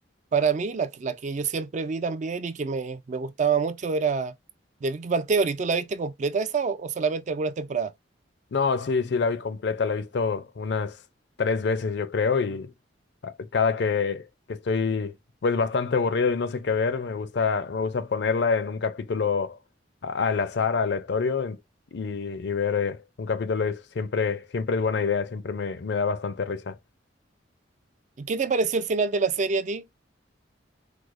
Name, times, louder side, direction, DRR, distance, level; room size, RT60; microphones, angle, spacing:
voice 1, 0.3-4.3 4.8-7.9 28.2-29.8, right 5 dB, 40° right, 0.3 m, -26 dB
voice 2, 8.5-11.0 11.4-12.7 13.2-15.1 15.4-19.6 20.0-21.6 21.9-26.8, left 5 dB, 65° left, 0.5 m, -26 dB
4.7 x 2.0 x 2.4 m
head